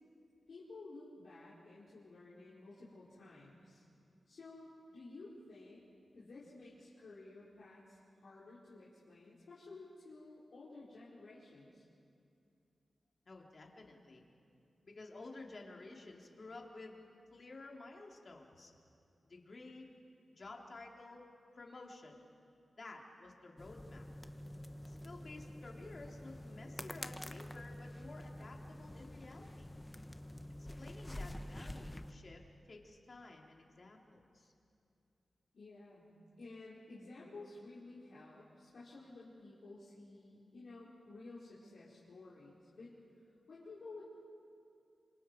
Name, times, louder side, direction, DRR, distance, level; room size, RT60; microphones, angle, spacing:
voice 1, 0.5-3.8 4.3-5.8 6.1-11.8 35.5-42.9 43.5-44.0, left 2 dB, 75° left, -8 dB, 4.6 m, -53 dB
voice 2, 13.3-14.2 14.8-17.0 17.3-18.7 19.2-19.9 20.4-21.2 21.5-22.2 22.8-24.1 24.8-29.7 30.6-34.5, left 2 dB, 55° left, 0 dB, 3.3 m, -52 dB
sound 1, 23.6-32.1, left 1 dB, 20° left, 1.1 m, -48 dB
28.0 x 25.5 x 4.6 m, 2.5 s
cardioid pair, 50°, 0 cm